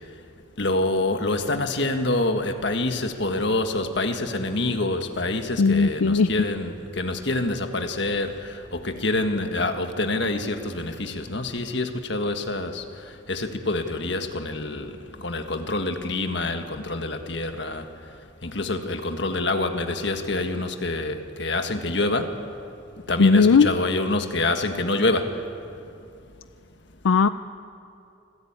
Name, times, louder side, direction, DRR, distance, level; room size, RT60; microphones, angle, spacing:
voice 1, 0.6-8.3 8.8-12.8 13.3-14.9 15.2-17.8 18.4-22.3 23.1-25.3, left 2 dB, 60° left, 6 dB, 1.6 m, -26 dB
voice 2, 5.6-6.3 23.2-23.7 27.0-27.3, left 5 dB, 85° left, 12 dB, 0.5 m, -17 dB
26.0 x 15.5 x 8.8 m, 2.6 s
head